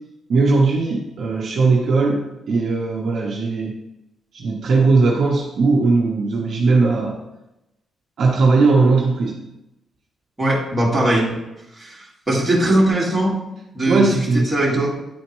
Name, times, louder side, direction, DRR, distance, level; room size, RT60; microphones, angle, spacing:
voice 1, 0.3-3.7 4.3-7.2 8.2-9.4 13.9-14.9, right 3 dB, 55° right, -1 dB, 0.7 m, -18 dB
voice 2, 10.4-11.3 11.8-13.4 13.7-14.0 14.5-14.9, right 1 dB, 15° right, -6 dB, 1.9 m, -19 dB
9.4 x 4.2 x 3.0 m, 0.93 s
cardioid pair, 150°, 0 cm